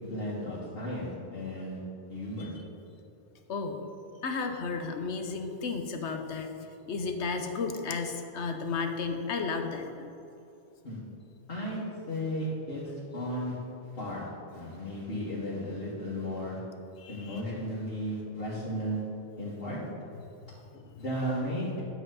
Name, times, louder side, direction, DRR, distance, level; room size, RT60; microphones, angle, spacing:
voice 1, 0.0-1.8 2.1-2.5 10.8-11.0 11.5-12.8 13.1-13.6 14.0-16.6 17.1-19.0 19.4-19.8 21.0-21.8, equal, 60° left, -9 dB, 2.0 m, -34 dB
voice 2, 3.5-3.8 4.2-6.5 6.9-10.1 17.0-17.4 20.5-20.9, left 4 dB, 85° left, 5 dB, 1.2 m, -33 dB
11.0 x 7.9 x 4.1 m, 2.7 s
omnidirectional pair, 1.1 m